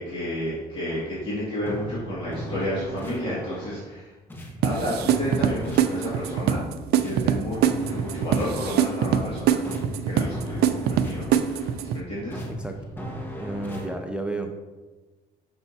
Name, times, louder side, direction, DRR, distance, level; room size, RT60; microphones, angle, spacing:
voice 1, 0.0-4.1 4.6-6.6 7.0-9.8 10.0-12.4, equal, 30° left, -8 dB, 2.0 m, -31 dB
sound 1, 0.9-1.2 1.7-4.0 4.3-6.6 7.0-9.3 9.6-11.9 12.3-14.0, equal, 10° left, 1.1 m, -37 dB
sound 2, 4.6-12.0, right 9 dB, 70° right, 0.5 m, -24 dB
voice 2, 12.5-12.8 13.3-14.5, right 2 dB, 5° right, 4 dB, 0.4 m, -32 dB
6.9 x 5.4 x 2.7 m, 1.3 s
cardioid pair, 110°, 17 cm